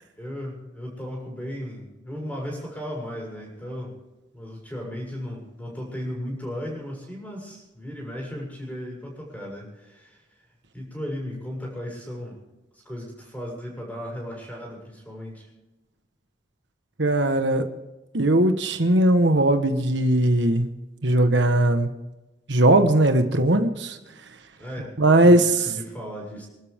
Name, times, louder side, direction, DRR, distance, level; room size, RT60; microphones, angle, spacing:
voice 1, 0.2-4.0 4.3-10.2 10.7-12.4 12.9-15.5 24.6-26.5, equal, 10° left, -1 dB, 7.0 m, -35 dB
voice 2, 17.0-17.7 18.1-20.7 21.0-21.9 22.5-24.0 25.0-25.6, right 1 dB, 75° right, 7 dB, 1.3 m, -19 dB
28.0 x 12.5 x 3.6 m, 1.0 s
head